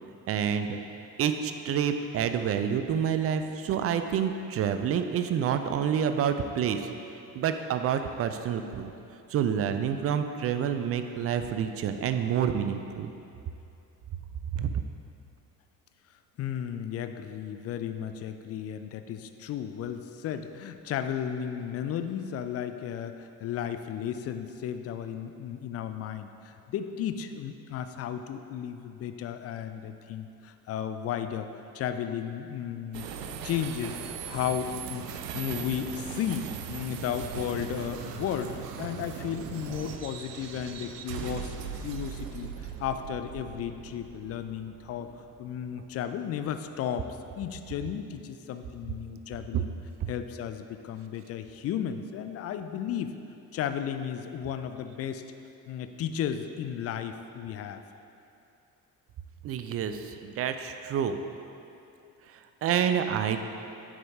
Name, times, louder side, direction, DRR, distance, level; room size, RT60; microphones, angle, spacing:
voice 1, 0.3-0.8 1.2-6.9 7.3-8.9 9.3-13.1 14.5-14.7 49.5-49.6 59.4-61.2 62.3-63.4, right 8 dB, 30° right, 8 dB, 0.4 m, -28 dB
voice 2, 16.4-33.1 33.4-35.1 35.3-41.5 41.8-47.1 47.3-49.7 50.1-53.1 53.5-55.2 55.7-57.8, left 9 dB, 35° left, 9 dB, 0.4 m, -34 dB
sound 1, 32.9-46.3, right 8 dB, 75° right, 0.5 m, -39 dB
8.9 x 4.8 x 3.6 m, 2.7 s
figure-of-eight pair, 45°, 48 cm